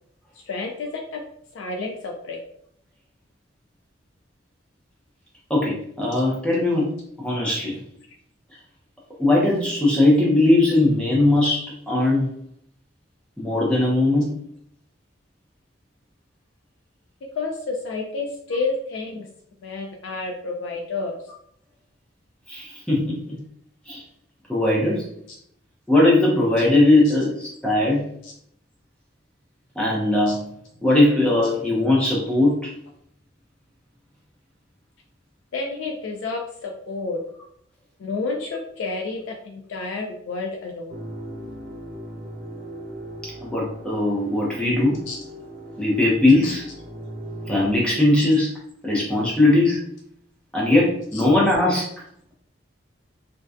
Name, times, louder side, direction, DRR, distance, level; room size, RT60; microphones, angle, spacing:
voice 1, 0.3-1.2 1.5-2.4 17.3-19.3 19.6-21.2 27.1-27.2 28.2-28.3 30.3-30.4 35.5-37.2 38.0-40.9 45.1-45.2 46.4-46.5 51.1-51.2, left 3 dB, 85° left, 0 dB, 0.3 m, -30 dB
voice 2, 5.5-7.8 9.2-12.3 13.4-14.4 22.5-23.4 23.9-24.0 24.5-25.1 25.9-28.1 29.8-30.5 30.8-32.7 43.4-45.0 45.8-46.6 47.5-48.5 48.8-49.9 50.5-52.0, left 2 dB, 5° left, -5 dB, 0.5 m, -19 dB
sound 1, 40.9-47.8, right 1 dB, 50° right, 0.4 m, -38 dB
2.6 x 2.1 x 2.3 m, 0.69 s
head